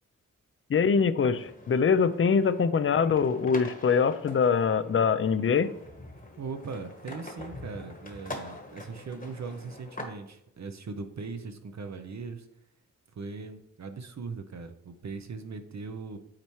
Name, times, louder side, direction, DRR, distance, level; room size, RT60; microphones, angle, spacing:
voice 1, 0.7-5.7, left 6 dB, 40° left, 14 dB, 0.5 m, -24 dB
sound 1, 1.3-10.0, left 2 dB, 25° left, 1.2 m, -45 dB
voice 2, 6.4-12.5 13.1-16.2, right 4 dB, 55° right, 7 dB, 0.7 m, -39 dB
8.7 x 4.3 x 3.1 m, 0.77 s
cardioid pair, 65°, 33 cm